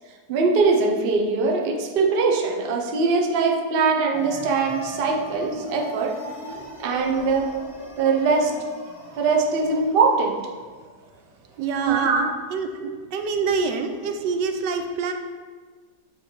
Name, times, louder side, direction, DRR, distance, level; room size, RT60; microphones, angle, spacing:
voice 1, 0.3-6.2 6.8-7.5 8.0-8.5 9.2-10.4 11.8-12.3 12.7-12.9, right 4 dB, 55° right, 1 dB, 0.6 m, -21 dB
sound 1, 4.1-12.2, left 1 dB, 5° right, 0.6 m, -41 dB
voice 2, 11.6-12.1 12.5-12.7 13.1-15.1, right 4 dB, 90° right, 6 dB, 1.2 m, -25 dB
7.8 x 3.1 x 4.4 m, 1.5 s
omnidirectional pair, 1.8 m